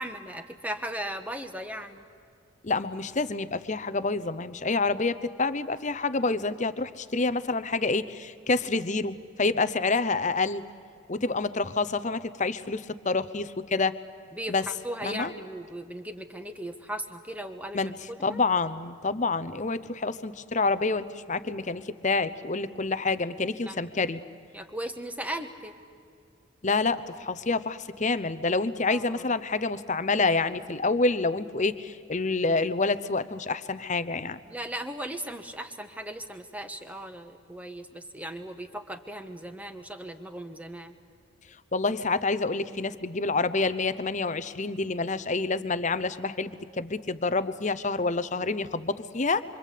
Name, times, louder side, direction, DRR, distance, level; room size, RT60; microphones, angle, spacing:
voice 1, 0.0-2.0 14.3-14.5 14.8-18.4 23.7-23.8 24.5-25.7 28.9-29.3 34.5-41.0, right 1 dB, 5° right, 7 dB, 1.3 m, -37 dB
voice 2, 2.6-10.6 11.1-13.9 14.5-14.6 15.0-15.3 17.7-24.2 26.6-34.4 41.7-49.4, left 3 dB, 35° left, 13 dB, 0.8 m, -28 dB
25.5 x 25.5 x 8.5 m, 2.3 s
head